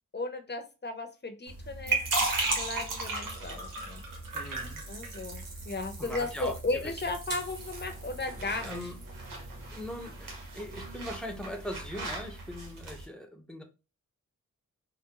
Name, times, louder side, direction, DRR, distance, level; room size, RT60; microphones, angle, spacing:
voice 1, 0.1-2.0 2.6-4.0 4.9-8.8, left 3 dB, 35° left, 7 dB, 0.7 m, -35 dB
sound 1, 1.5-13.1, right 3 dB, 85° right, 1.0 m, -36 dB
voice 2, 4.3-4.8 6.0-6.6 8.6-9.0 9.7-13.6, equal, 5° left, 5 dB, 0.8 m, -40 dB
3.7 x 2.2 x 2.8 m, 0.30 s
cardioid pair, 50°, 32 cm